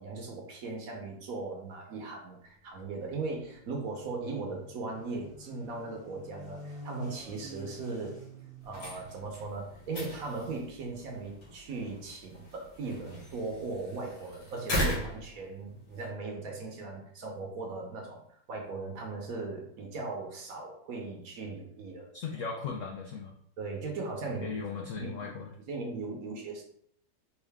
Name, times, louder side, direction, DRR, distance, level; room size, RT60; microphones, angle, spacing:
voice 1, 0.0-8.2 8.6-22.1 23.6-24.5 24.9-25.3 25.7-26.6, right 3 dB, 60° right, 1 dB, 1.1 m, -38 dB
sound 1, 2.4-10.0, equal, 5° left, 0.9 m, -50 dB
sound 2, 8.6-16.1, equal, 70° left, 1.9 m, -38 dB
voice 2, 22.1-23.3 24.4-25.5, left 5 dB, 90° left, 1 dB, 0.6 m, -37 dB
4.6 x 2.5 x 3.4 m, 0.67 s
omnidirectional pair, 1.9 m